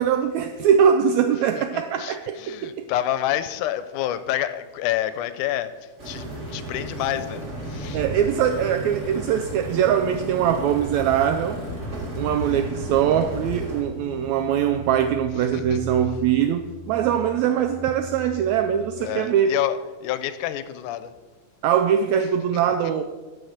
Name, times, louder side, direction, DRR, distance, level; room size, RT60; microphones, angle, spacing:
voice 1, 0.0-2.7 7.9-11.6 12.1-19.5 21.6-23.0, right 8 dB, 85° right, 7 dB, 1.6 m, -22 dB
voice 2, 1.6-8.0 15.5-15.8 19.0-21.1, left 12 dB, 80° left, 12 dB, 2.0 m, -28 dB
sound 1, 6.0-13.8, right 1 dB, 25° right, 1.9 m, -34 dB
sound 2, 6.2-19.2, equal, 15° left, 1.5 m, -41 dB
13.5 x 4.6 x 6.5 m, 1.3 s
omnidirectional pair, 3.7 m